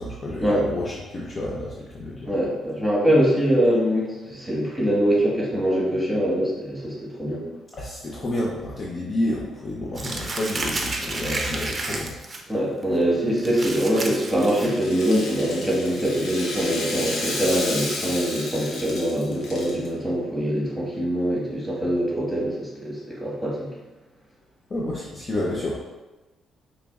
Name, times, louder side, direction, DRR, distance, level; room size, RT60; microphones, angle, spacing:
voice 1, 0.0-2.4 7.8-12.1 24.7-25.8, left 1 dB, 40° left, -4 dB, 0.6 m, -29 dB
voice 2, 2.2-7.4 12.5-23.7, equal, ahead, -5 dB, 1.5 m, -23 dB
Crumpling crinkling, 10.0-12.4 12.8-13.0 13.4-15.1, right 2 dB, 30° right, 0.6 m, -31 dB
Rattle (instrument), 13.8-19.9, left 2 dB, 80° left, 0.9 m, -33 dB
4.9 x 3.0 x 2.3 m, 1.1 s
cardioid pair, 90°, 0 cm